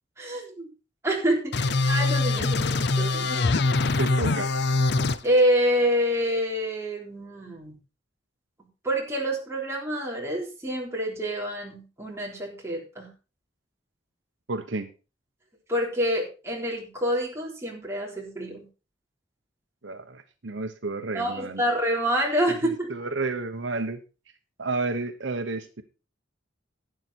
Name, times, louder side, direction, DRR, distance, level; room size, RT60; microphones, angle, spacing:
voice 1, 0.2-0.7 1.0-3.3 5.2-7.8 8.8-13.1 15.7-18.7 21.1-23.0, equal, 15° right, -2 dB, 3.8 m, -27 dB
sound 1, 1.5-5.2, left 3 dB, 60° left, 0.7 m, -23 dB
voice 2, 4.0-4.5 14.5-14.9 19.8-21.6 22.6-24.0 24.6-25.8, right 3 dB, 75° right, 7 dB, 1.0 m, -31 dB
11.5 x 9.3 x 4.2 m, 0.32 s
head